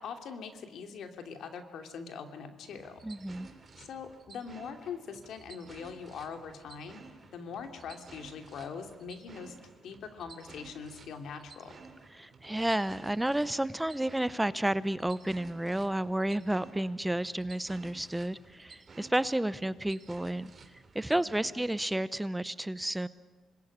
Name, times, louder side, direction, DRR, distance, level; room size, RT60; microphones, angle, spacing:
voice 1, 0.0-3.0 3.8-7.0 7.3-9.5 9.8-11.8 21.1-21.6, left 6 dB, 75° left, 6 dB, 2.8 m, -42 dB
sound 1, 2.7-21.9, right 4 dB, 40° right, 3.4 m, -54 dB
voice 2, 3.0-3.5 12.1-20.5 20.9-23.1, right 1 dB, 10° right, 16 dB, 0.8 m, -31 dB
27.0 x 20.5 x 9.9 m, 1.3 s
cardioid pair, 80°, 0 cm